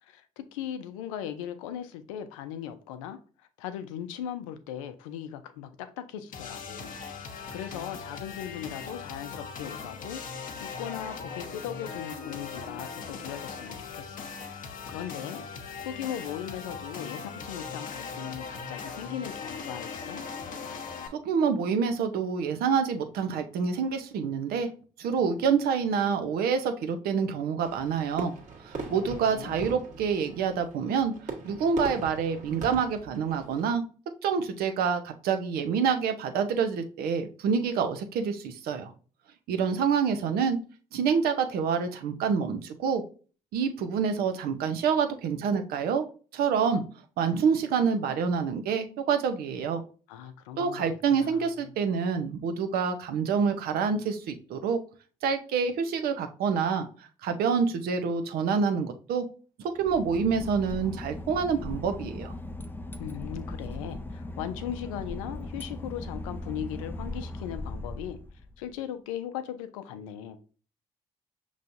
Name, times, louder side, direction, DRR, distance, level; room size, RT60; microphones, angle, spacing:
voice 1, 0.0-3.2 3.6-6.9 7.2-10.2 10.6-14.3 14.9-15.5 15.8-20.2 28.9-29.6 50.1-51.5 63.0-68.2 68.6-70.4, left 10 dB, 90° left, 10 dB, 0.5 m, -38 dB
sound 1, 6.3-21.1, left 5 dB, 55° left, 0.9 m, -39 dB
voice 2, 21.1-24.7 25.0-28.3 28.6-31.1 31.4-33.8 34.2-38.9 39.5-40.6 40.9-43.0 43.5-46.0 46.3-46.8 47.2-49.8 50.6-54.8 55.2-56.9 57.2-59.3 59.6-62.3, right 6 dB, 70° right, 7 dB, 0.7 m, -27 dB
Fireworks, 27.6-33.8, right 4 dB, 45° right, 1.5 m, -41 dB
Boat Water vehicle / Engine, 59.7-68.7, left 2 dB, 10° left, 0.5 m, -38 dB
5.5 x 3.1 x 2.6 m, 0.38 s
hypercardioid pair, 55°, 16 cm